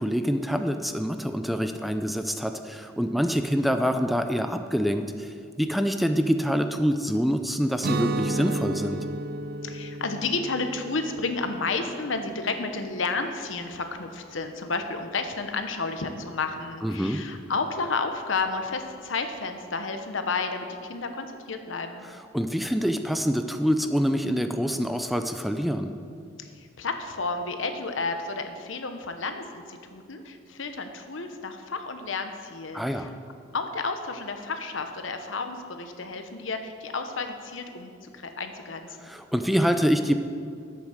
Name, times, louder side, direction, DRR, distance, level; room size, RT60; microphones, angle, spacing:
voice 1, 0.0-9.0 16.8-17.2 22.3-25.9 32.7-33.1 39.1-40.1, equal, ahead, 7 dB, 0.4 m, -26 dB
Guitar, 7.8-13.6, right 2 dB, 55° right, 0.5 m, -33 dB
voice 2, 9.6-22.0 26.4-33.1 33.5-39.1, left 4 dB, 75° left, 7 dB, 1.0 m, -31 dB
10.5 x 8.2 x 6.6 m, 2.3 s
head